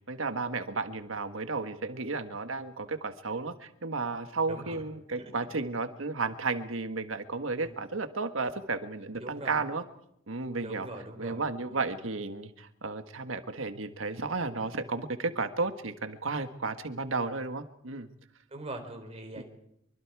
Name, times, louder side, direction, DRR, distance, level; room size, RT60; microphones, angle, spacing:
voice 1, 0.1-9.8 10.3-10.9 11.2-18.1, right 3 dB, 90° right, 9 dB, 1.6 m, -33 dB
voice 2, 4.5-4.8 5.1-5.3 7.6-7.9 9.2-9.6 10.6-11.4 11.7-11.9 18.5-19.4, right 1 dB, 30° right, 5 dB, 4.0 m, -42 dB
25.0 x 24.5 x 4.8 m, 0.75 s
head